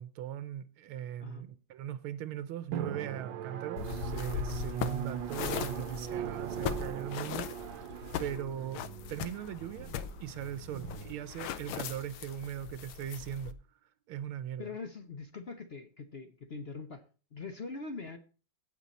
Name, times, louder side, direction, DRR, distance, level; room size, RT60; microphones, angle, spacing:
voice 1, 0.0-7.9 8.2-8.8 9.1-9.9 10.2-13.6 14.1-14.8, right 10 dB, 90° right, 1.6 m, -39 dB
Drum, 2.7-12.0, right 9 dB, 70° right, 1.4 m, -40 dB
sound 1, 3.8-13.5, left 9 dB, 90° left, 1.7 m, -39 dB
voice 2, 14.6-17.0 17.3-18.2, left 4 dB, 50° left, 0.7 m, -42 dB
17.0 x 5.9 x 4.1 m
omnidirectional pair, 2.2 m